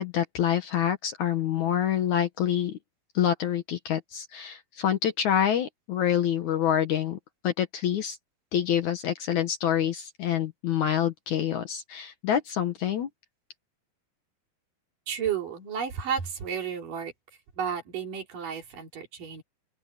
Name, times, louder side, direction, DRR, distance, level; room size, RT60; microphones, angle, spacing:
voice 1, 0.0-2.8 3.1-7.2 7.4-8.2 8.5-13.1, left 10 dB, 60° left, 2.3 m, -26 dB
voice 2, 15.1-17.1 17.6-19.4, right 7 dB, 60° right, 5.0 m, -32 dB
open air
omnidirectional pair, 4.3 m